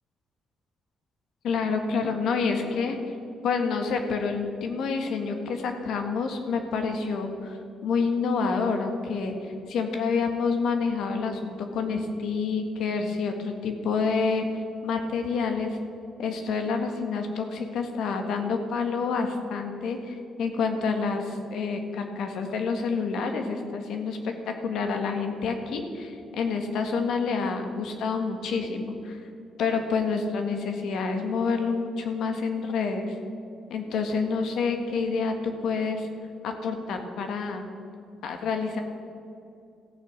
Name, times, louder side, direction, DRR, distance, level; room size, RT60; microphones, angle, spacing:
voice 1, 1.4-3.0 3.4-7.6 7.8-14.5 14.8-15.8 16.2-29.2 29.6-33.1 33.7-36.1 36.4-37.6 38.2-38.8, left 5 dB, 75° left, 5 dB, 1.4 m, -28 dB
14.5 x 6.9 x 6.2 m, 2.5 s
cardioid pair, 90°, 0 cm